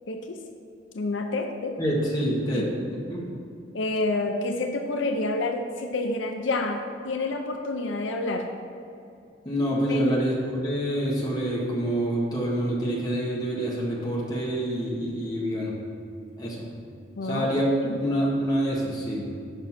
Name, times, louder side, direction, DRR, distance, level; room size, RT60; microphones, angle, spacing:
voice 1, 0.1-0.4 0.9-1.8 2.5-2.7 3.7-8.5 9.9-10.2 17.2-17.5 17.8-18.0, left 2 dB, 85° left, 4 dB, 0.6 m, -28 dB
voice 2, 1.8-3.2 9.4-15.7 16.4-16.6 17.2-17.7 17.9-19.3, equal, 20° left, -5 dB, 1.7 m, -27 dB
7.1 x 5.4 x 5.9 m, 2.5 s
head